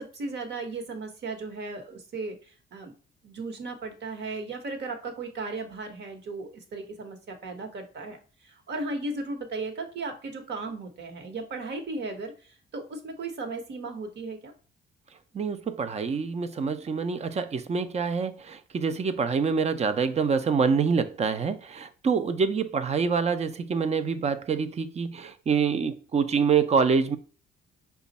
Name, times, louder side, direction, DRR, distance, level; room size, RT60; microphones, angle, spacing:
voice 1, 0.0-2.9 3.2-14.5, right 3 dB, 60° right, 1.2 m, -36 dB
voice 2, 15.3-27.2, right 5 dB, 35° right, 0.5 m, -26 dB
5.0 x 2.4 x 4.0 m
cardioid pair, 90°, 20 cm